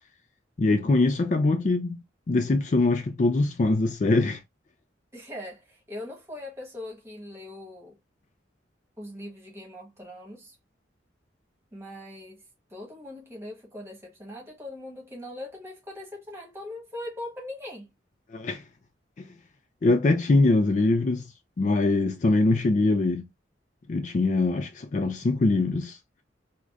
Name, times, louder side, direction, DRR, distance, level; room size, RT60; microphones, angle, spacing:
voice 1, 0.6-2.0 2.3-4.4 18.3-18.6 19.2-19.3 19.8-21.3 21.6-23.3 23.9-26.0, left 2 dB, 40° left, 0.3 m, -23 dB
voice 2, 5.1-8.0 9.0-10.5 11.7-12.4 12.7-17.9, left 1 dB, 15° right, 1.2 m, -40 dB
4.7 x 2.1 x 2.4 m
head